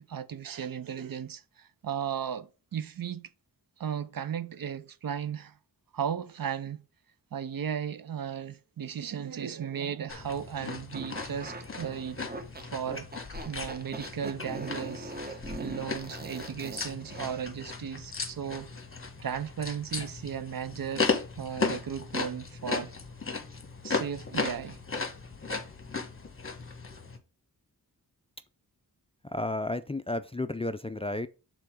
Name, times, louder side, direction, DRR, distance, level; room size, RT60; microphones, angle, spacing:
voice 1, 0.0-3.3 3.8-5.5 5.9-6.8 7.3-12.2 12.7-18.7 19.2-22.9 23.8-24.8, right 8 dB, 60° right, 0.6 m, -36 dB
sound 1, 10.1-27.2, left 4 dB, 35° left, 1.1 m, -36 dB
sound 2, 10.9-17.5, right 2 dB, 25° right, 0.9 m, -41 dB
voice 2, 29.2-31.3, left 2 dB, 15° left, 0.3 m, -32 dB
6.8 x 3.8 x 4.6 m
wide cardioid pair, 105°, 39 cm